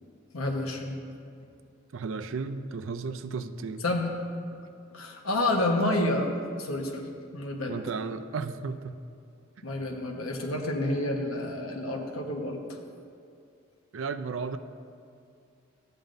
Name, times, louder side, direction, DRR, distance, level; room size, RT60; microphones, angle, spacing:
voice 1, 0.3-1.0 3.8-4.1 4.9-6.3 6.6-7.1 7.3-7.8 9.6-12.6, left 1 dB, 90° left, 1 dB, 1.2 m, -29 dB
voice 2, 1.9-3.8 7.7-9.0 13.9-14.6, right 4 dB, 65° right, 11 dB, 0.4 m, -34 dB
13.5 x 8.9 x 2.6 m, 2.4 s
head